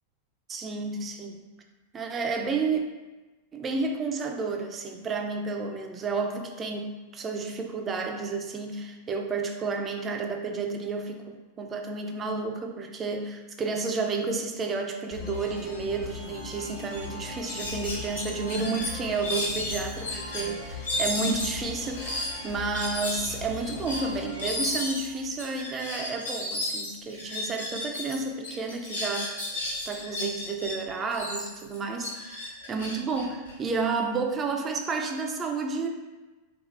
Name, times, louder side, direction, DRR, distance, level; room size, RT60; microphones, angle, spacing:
voice 1, 0.5-1.4 1.9-2.8 3.5-29.3 29.9-35.9, right 4 dB, 25° right, 4 dB, 0.5 m, -31 dB
sound 1, 15.1-25.7, left 4 dB, 45° left, 0.9 m, -40 dB
sound 2, 16.5-16.6 16.9-17.1 17.5-20.4 20.8-28.1 28.4-30.7 31.1-34.0, left 1 dB, 70° left, 1.2 m, -33 dB
3.5 x 3.1 x 3.2 m, 1.2 s
figure-of-eight pair, 90°, 0 cm